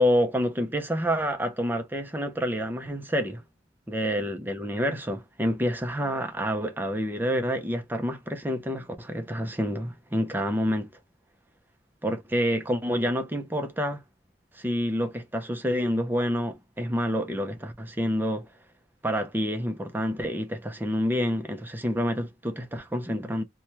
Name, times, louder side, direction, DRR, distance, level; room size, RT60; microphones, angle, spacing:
voice 1, 0.0-3.4 3.9-10.9 12.0-14.0 14.5-18.5 19.0-23.4, equal, 10° right, 0.5 m, -28 dB
3.0 x 2.2 x 2.8 m
head